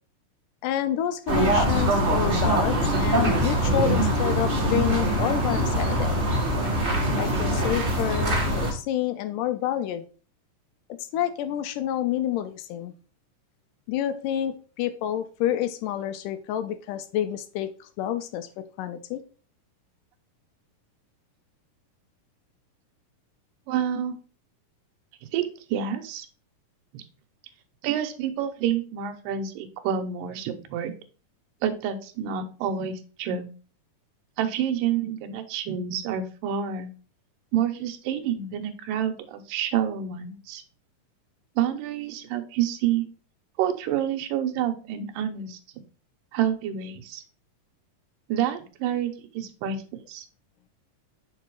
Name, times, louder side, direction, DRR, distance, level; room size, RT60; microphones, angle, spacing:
voice 1, 0.6-6.2 7.2-10.1 11.1-12.9 13.9-19.2, left 11 dB, 80° left, 11 dB, 2.1 m, -29 dB
sound 1, 1.3-8.7, right 1 dB, 50° right, 0.6 m, -23 dB
voice 2, 23.7-24.1 25.3-26.3 26.9-27.0 27.8-30.9 31.6-33.5 34.4-36.9 37.5-40.6 41.6-43.1 43.6-45.6 46.3-47.2 48.3-50.3, right 9 dB, 80° right, 7 dB, 2.4 m, -28 dB
6.7 x 3.8 x 4.6 m, 0.38 s
omnidirectional pair, 3.9 m